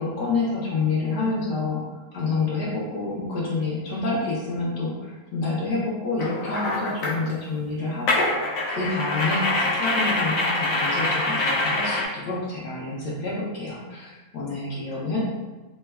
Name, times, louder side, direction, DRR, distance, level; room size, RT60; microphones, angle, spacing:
voice 1, 0.0-1.8 2.1-8.4 8.7-14.1 14.3-15.2, left 3 dB, 85° left, -5 dB, 1.3 m, -28 dB
sound 1, 6.2-7.2 8.1-12.0, left 2 dB, 65° left, 1.0 m, -25 dB
3.2 x 2.2 x 3.3 m, 1.2 s
omnidirectional pair, 1.7 m